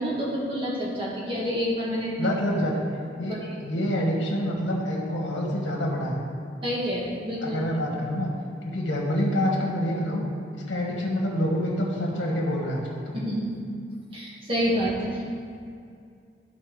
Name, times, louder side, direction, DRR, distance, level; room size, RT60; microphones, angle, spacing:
voice 1, 0.0-2.3 3.2-3.4 6.6-7.6 13.1-13.6 14.1-15.2, equal, 30° right, -6 dB, 1.7 m, -28 dB
voice 2, 2.2-2.8 3.2-3.4 3.6-6.2 7.4-8.3 8.6-10.2 10.7-13.2, equal, 80° left, -2 dB, 1.6 m, -27 dB
13.0 x 4.4 x 3.3 m, 2.3 s
head